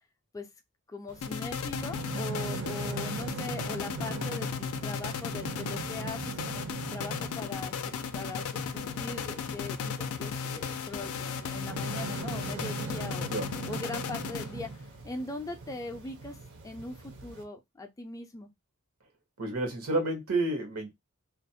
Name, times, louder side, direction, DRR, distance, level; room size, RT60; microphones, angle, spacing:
voice 1, 0.9-13.3 13.7-14.7 15.0-16.4 16.6-18.5, left 2 dB, 15° left, 0.3 m, -41 dB
sound 1, 1.1-17.4, right 4 dB, 60° right, 0.6 m, -41 dB
sound 2, 1.2-14.8, left 6 dB, 90° left, 0.4 m, -36 dB
voice 2, 19.4-20.9, right 2 dB, 90° right, 1.0 m, -30 dB
2.4 x 2.0 x 2.6 m
head